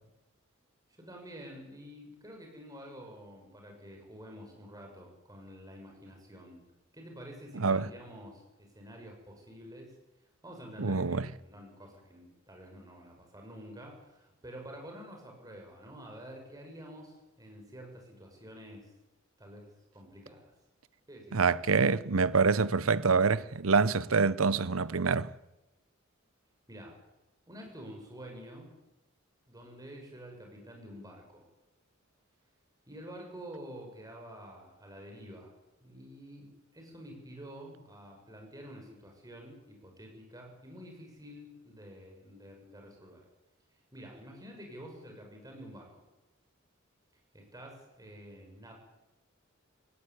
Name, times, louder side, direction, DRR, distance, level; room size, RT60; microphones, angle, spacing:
voice 1, 1.0-6.7 6.9-9.9 10.4-18.9 19.4-19.7 19.9-20.5 21.1-21.4 26.7-27.0 27.5-28.7 29.5-31.4 32.9-35.5 35.8-43.2 43.9-46.0 47.3-48.7, equal, 20° right, 6.6 m, -48 dB
voice 2, 7.6-7.9 10.8-11.3 21.3-25.3, right 4 dB, 90° right, 0.8 m, -26 dB
18.5 x 17.5 x 9.8 m
head